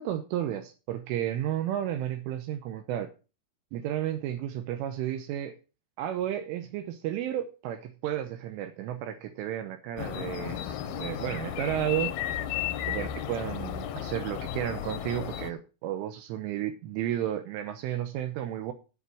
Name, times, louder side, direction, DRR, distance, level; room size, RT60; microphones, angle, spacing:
voice 1, 0.0-3.1 3.7-5.6 6.0-12.2 12.9-18.7, right 11 dB, 80° right, 3.2 m, -32 dB
sound 1, 10.0-15.5, left 10 dB, 75° left, 2.4 m, -34 dB
15.0 x 5.4 x 6.2 m
omnidirectional pair, 5.9 m